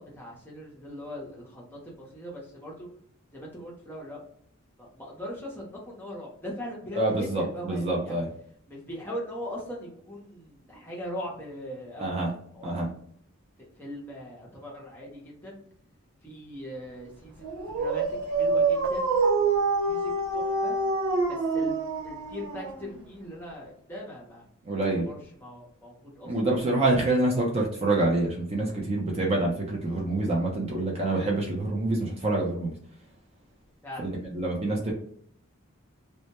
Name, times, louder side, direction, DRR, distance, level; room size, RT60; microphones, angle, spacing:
voice 1, 0.0-2.9 3.3-4.2 4.8-8.2 8.7-12.2 12.5-12.8 13.6-15.6 16.2-19.1 19.5-20.7 21.3-21.7 22.0-24.5 24.7-26.3 33.8-34.1, equal, 10° left, -4 dB, 0.6 m, -40 dB
voice 2, 7.0-8.3 12.0-12.3 12.6-12.9 24.7-25.1 26.2-32.7 34.2-34.9, right 2 dB, 30° right, -2 dB, 0.4 m, -26 dB
Dog, 17.4-23.1, right 3 dB, 85° right, 0.6 m, -26 dB
2.2 x 2.1 x 2.8 m, 0.62 s
head